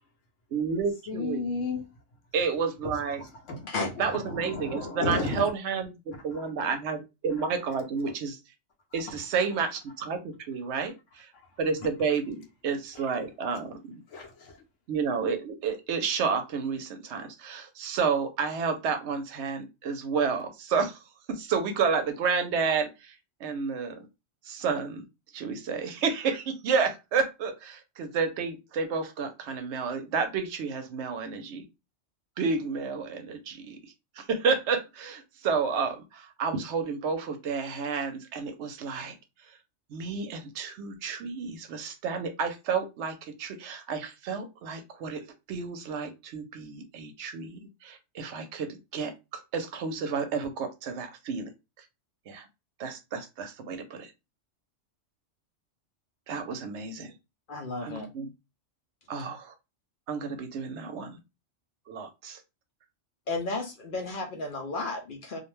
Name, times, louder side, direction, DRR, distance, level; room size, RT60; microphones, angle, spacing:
voice 1, 0.5-1.4 2.3-3.2 4.0-8.4 8.9-11.3 11.6-13.8 14.9-21.0 21.3-23.1 23.4-24.0 24.4-25.0 25.3-31.6 32.4-33.8 34.2-39.2 39.9-45.2 45.5-51.5 52.3-52.5 52.8-54.1 56.3-57.1 57.8-58.3 59.1-59.5 60.1-61.2 61.9-62.4, right 5 dB, 70° right, 0.8 m, -31 dB
voice 2, 1.1-1.8 3.2-5.4 6.3-6.4 14.1-14.6, left 3 dB, 80° left, 0.9 m, -33 dB
voice 3, 3.6-4.1 57.5-58.1 63.3-65.4, left 3 dB, 55° left, 0.6 m, -33 dB
2.4 x 2.1 x 3.0 m
omnidirectional pair, 1.3 m